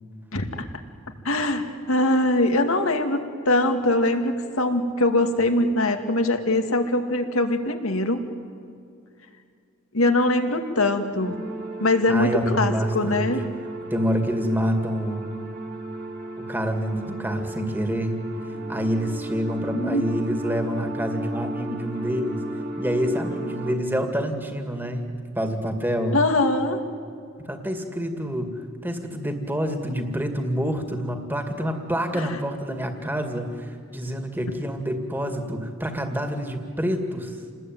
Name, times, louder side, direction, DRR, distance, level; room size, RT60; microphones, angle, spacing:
voice 1, 0.3-0.7 1.2-8.2 9.9-11.4 11.8-13.4 19.7-20.0 26.1-26.8 32.1-32.4, left 2 dB, 80° left, 6 dB, 2.3 m, -22 dB
sound 1, 11.2-23.8, right 1 dB, 45° right, 2.7 m, -34 dB
voice 2, 12.1-13.3 13.9-15.3 16.4-18.2 18.7-22.4 22.8-26.2 27.5-37.4, equal, 10° right, 5 dB, 2.2 m, -27 dB
29.0 x 20.0 x 9.4 m, 2.4 s
head